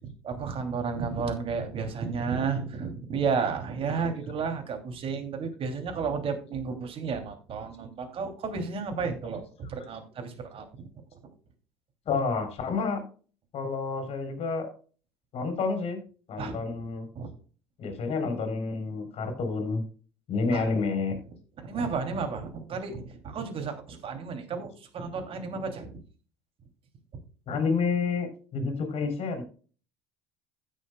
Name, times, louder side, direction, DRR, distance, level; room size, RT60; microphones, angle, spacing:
voice 1, 0.0-10.9 16.4-16.6 17.1-17.3 20.5-20.7 21.6-26.0, right 5 dB, 45° right, 5 dB, 2.8 m, -32 dB
voice 2, 12.1-13.0 13.5-14.7 15.3-16.0 16.3-17.1 17.8-19.8 20.3-21.2 27.5-29.4, left 4 dB, 50° left, 7 dB, 3.6 m, -29 dB
16.0 x 6.5 x 2.3 m, 0.39 s
hypercardioid pair, 65°, 13 cm